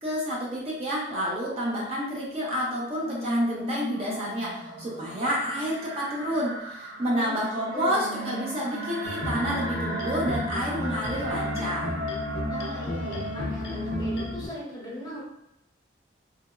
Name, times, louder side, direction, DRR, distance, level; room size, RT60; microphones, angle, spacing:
voice 1, 0.0-11.9, equal, 30° right, -5 dB, 0.5 m, -29 dB
sound 1, 2.5-14.4, right 1 dB, 50° right, 1.1 m, -36 dB
voice 2, 7.0-8.1 12.5-15.2, equal, 20° left, -7 dB, 0.7 m, -38 dB
sound 2, 9.0-14.5, left 2 dB, 60° left, 0.4 m, -33 dB
2.8 x 2.0 x 2.3 m, 0.79 s
head